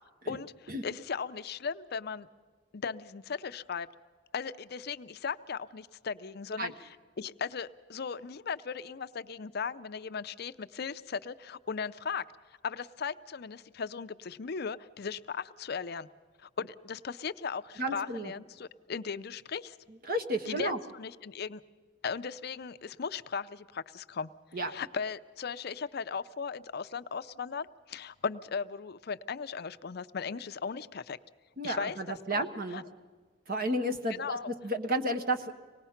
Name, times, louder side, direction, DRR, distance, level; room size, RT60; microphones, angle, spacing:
voice 1, 0.3-2.3 2.7-3.9 4.3-12.3 12.6-16.1 16.4-19.8 20.5-21.6 22.0-24.3 24.7-31.2 31.6-32.4 32.7-32.8 34.1-34.5, left 5 dB, 55° left, 11 dB, 0.5 m, -37 dB
voice 2, 17.8-18.3 20.1-20.8 24.5-24.7 31.6-32.8 33.5-34.4 34.6-35.5, right 1 dB, 50° right, 6 dB, 1.3 m, -32 dB
25.0 x 19.0 x 5.8 m, 1.5 s
head